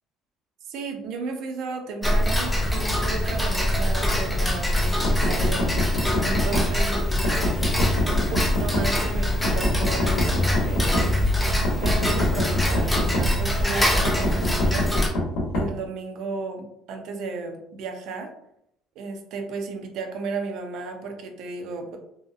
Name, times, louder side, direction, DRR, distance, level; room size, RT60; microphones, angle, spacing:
voice 1, 0.6-5.7 6.2-7.6 8.1-11.2 11.8-14.9 15.5-18.3 19.0-22.0, right 4 dB, 55° right, 4 dB, 0.4 m, -34 dB
Tick-tock, 2.0-15.1, left 1 dB, 5° left, 0.4 m, -23 dB
sound 1, 5.0-6.7 7.2-8.9 9.4-11.1 11.6-13.3 14.0-15.7, left 1 dB, 85° left, 0.8 m, -25 dB
2.7 x 2.3 x 2.4 m, 0.76 s
cardioid pair, 170°, 0 cm